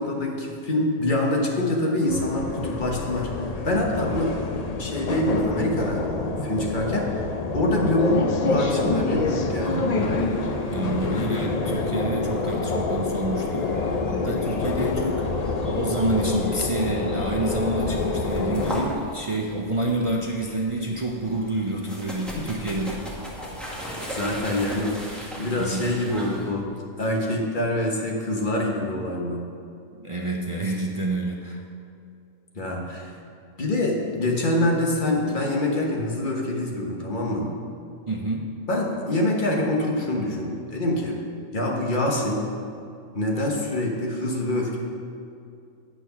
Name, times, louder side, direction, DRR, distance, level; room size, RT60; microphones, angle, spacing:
voice 1, 0.0-3.3 3.6-4.3 4.8-9.9 24.1-26.7 27.0-29.5 32.5-33.1 33.6-37.5 38.7-41.2 41.5-42.5 43.1-44.8, left 1 dB, 35° left, -1 dB, 1.3 m, -25 dB
sound 1, 2.1-18.8, left 3 dB, 65° left, 0.3 m, -27 dB
sound 2, 9.9-26.5, equal, ahead, 1.5 m, -39 dB
voice 2, 10.7-23.0 25.6-25.8 29.9-31.6 38.1-38.5, right 2 dB, 50° right, -2 dB, 0.4 m, -28 dB
8.9 x 6.3 x 5.7 m, 2.5 s
omnidirectional pair, 1.5 m